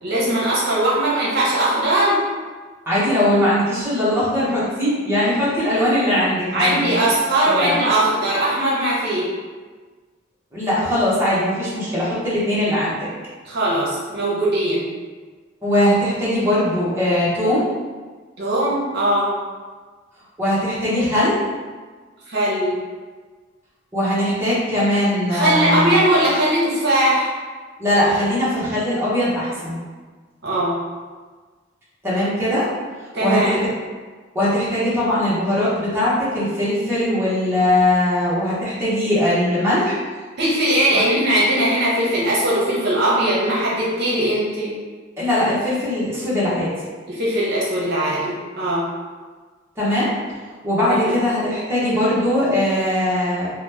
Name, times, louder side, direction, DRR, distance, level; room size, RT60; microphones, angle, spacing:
voice 1, 0.0-2.2 6.5-9.3 13.4-14.8 18.4-19.3 22.3-22.8 25.3-27.3 30.4-30.8 33.1-33.6 40.4-44.7 47.1-48.8 50.9-51.1, right 1 dB, 55° right, -6 dB, 0.7 m, -20 dB
voice 2, 2.9-6.9 7.4-7.7 10.5-13.1 15.6-17.7 20.4-21.4 23.9-26.0 27.8-29.8 32.0-32.7 33.2-33.6 34.3-40.0 40.9-41.0 45.2-46.7 49.8-50.1 50.6-53.5, left 1 dB, 10° right, -10 dB, 0.8 m, -20 dB
2.9 x 2.1 x 3.3 m, 1.4 s
head